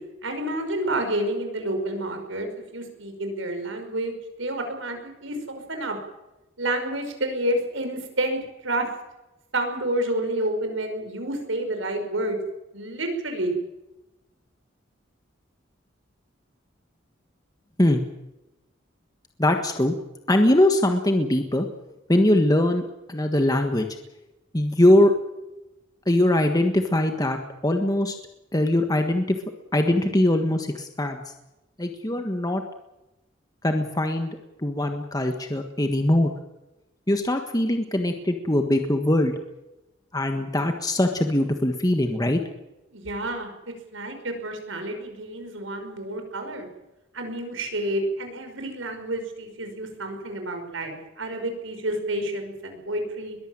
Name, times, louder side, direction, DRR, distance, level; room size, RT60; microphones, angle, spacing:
voice 1, 0.2-6.0 6.6-8.9 9.5-12.4 12.7-13.5 42.9-43.5 43.9-46.7 47.1-53.4, right 1 dB, 80° right, 6 dB, 5.6 m, -29 dB
voice 2, 19.4-19.9 20.3-21.7 22.1-22.8 23.1-23.9 24.5-25.1 26.1-28.2 28.5-29.4 29.7-31.2 31.8-32.6 33.6-36.3 37.1-39.3 40.1-42.4, left 1 dB, 20° left, 5 dB, 1.5 m, -21 dB
22.0 x 15.0 x 8.9 m, 0.97 s
head